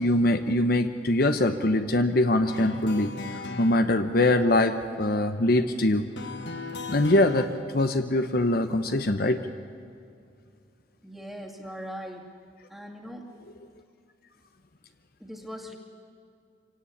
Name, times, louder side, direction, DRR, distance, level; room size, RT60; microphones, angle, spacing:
voice 1, 0.0-6.1 6.9-7.5 7.7-9.4, left 1 dB, 55° left, 8 dB, 0.9 m, -23 dB
sound 1, 2.5-3.8 6.2-7.5, left 3 dB, 70° left, 1.5 m, -36 dB
voice 2, 11.0-12.3 12.7-13.3 15.2-15.8, equal, ahead, 0 dB, 2.3 m, -40 dB
25.0 x 17.5 x 8.5 m, 2.4 s
head